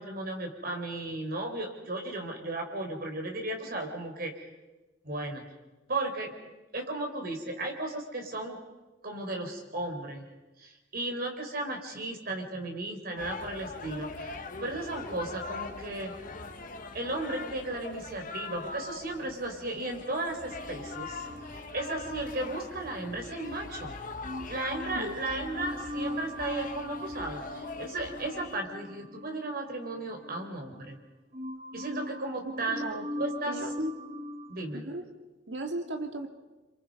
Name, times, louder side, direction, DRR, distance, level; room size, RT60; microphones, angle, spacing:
voice 1, 0.0-4.3 5.0-5.4 5.9-6.3 6.7-8.6 9.0-10.2 10.6-16.1 16.9-21.3 21.7-23.9 24.5-31.0 31.7-32.9 33.2-33.6 34.5-34.9, right 2 dB, 55° right, 3 dB, 4.2 m, -35 dB
sound 1, 13.2-28.6, left 3 dB, 50° left, 1.6 m, -42 dB
sound 2, 20.5-23.8 24.2-31.0 31.3-34.6, left 1 dB, 35° right, 1.3 m, -41 dB
voice 2, 32.4-33.1 33.5-33.9 34.7-35.1 35.5-36.3, right 1 dB, 75° right, 5 dB, 2.5 m, -36 dB
28.5 x 26.5 x 5.5 m, 1.1 s
head